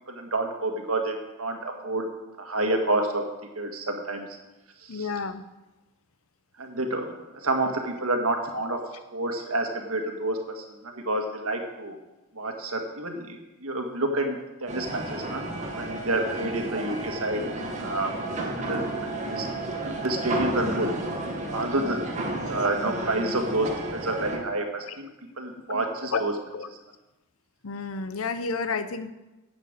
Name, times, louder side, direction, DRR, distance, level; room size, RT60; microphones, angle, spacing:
voice 1, 0.1-2.1 2.4-3.2 3.6-4.3 4.8-5.1 6.6-7.1 7.4-8.8 9.1-12.0 12.4-15.4 15.8-17.4 17.8-19.5 19.8-20.9 21.5-22.0 22.5-25.1 25.4-26.3, right 2 dB, 75° right, 4 dB, 1.8 m, -29 dB
voice 2, 4.9-5.4 16.4-16.5 24.9-25.0 25.7-26.2 26.5-26.7 27.6-29.1, left 4 dB, 70° left, 11 dB, 0.7 m, -31 dB
sound 1, 14.7-24.4, right 2 dB, 35° right, 1.7 m, -32 dB
11.0 x 8.1 x 6.8 m, 1.1 s
head